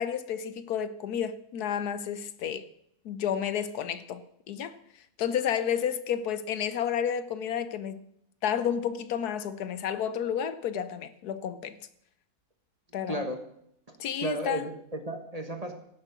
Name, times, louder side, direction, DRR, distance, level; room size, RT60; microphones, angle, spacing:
voice 1, 0.0-2.6 3.0-4.2 4.5-4.7 5.2-8.0 8.4-11.8 12.9-13.2 14.0-14.6, left 8 dB, 80° left, 1.3 m, -31 dB
voice 2, 13.1-13.4 13.9-15.7, right 1 dB, 25° right, 1.4 m, -34 dB
16.5 x 7.5 x 6.2 m
omnidirectional pair, 1.6 m